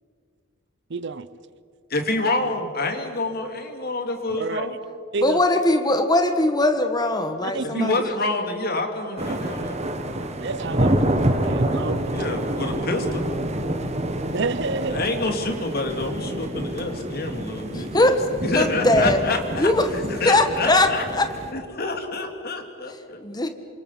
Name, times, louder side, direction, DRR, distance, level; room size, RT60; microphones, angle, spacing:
voice 1, 0.9-1.3 4.3-4.8 5.1-5.4 7.4-8.0 10.4-12.2 14.3-15.0, right 4 dB, 60° right, 15 dB, 0.8 m, -29 dB
voice 2, 1.9-4.7 7.7-9.8 12.1-13.2 14.9-18.2 18.4-19.7 20.1-21.0 21.5-23.3, left 2 dB, 50° left, 4 dB, 2.7 m, -27 dB
voice 3, 5.2-8.2 17.7-19.2 19.6-19.9 20.2-21.3 23.2-23.5, left 2 dB, 20° left, 7 dB, 1.5 m, -21 dB
sound 1, 9.2-21.5, right 1 dB, 35° right, 1.7 m, -27 dB
28.0 x 26.5 x 5.8 m, 2.3 s
head